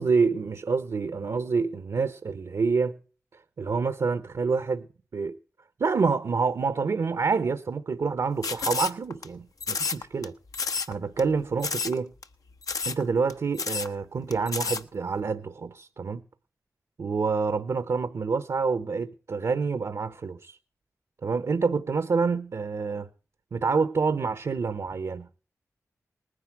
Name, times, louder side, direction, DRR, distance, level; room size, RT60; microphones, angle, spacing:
voice 1, 0.0-3.0 3.6-4.9 5.1-5.4 5.8-10.3 10.9-12.1 12.9-16.2 17.0-20.6 21.2-23.1 23.5-25.4, right 4 dB, 70° right, 0.9 m, -27 dB
sound 1, 8.4-9.3 9.6-10.3 10.5-10.9 11.2-11.3 11.6-12.0 12.2-12.3 12.6-13.0 13.3-13.4 13.6-13.9 14.3-14.8, left 4 dB, 70° left, 0.9 m, -30 dB
19.5 x 9.9 x 4.7 m
cardioid pair, 50°, 6 cm